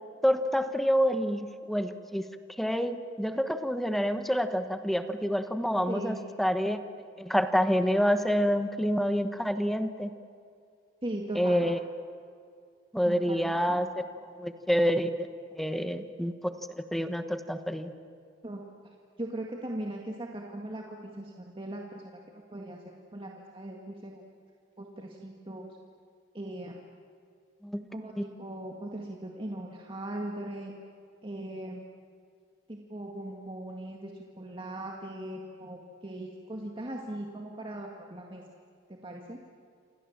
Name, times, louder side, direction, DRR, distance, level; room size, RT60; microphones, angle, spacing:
voice 1, 0.2-2.3 2.6-6.8 7.2-10.1 11.3-11.8 12.9-14.0 14.4-15.1 15.5-16.5 16.9-17.9 27.6-27.9 28.2-28.3, equal, ahead, 8 dB, 1.1 m, -27 dB
voice 2, 5.9-6.2 11.0-11.7 13.1-13.8 18.4-18.6 19.2-22.0 22.5-22.8 23.1-24.2 24.8-25.7 26.3-26.8 27.9-30.7 31.2-31.8 32.7-34.1 34.4-38.4 39.0-39.4, right 1 dB, 25° right, 0 dB, 1.9 m, -39 dB
28.5 x 27.0 x 7.3 m, 2.3 s
head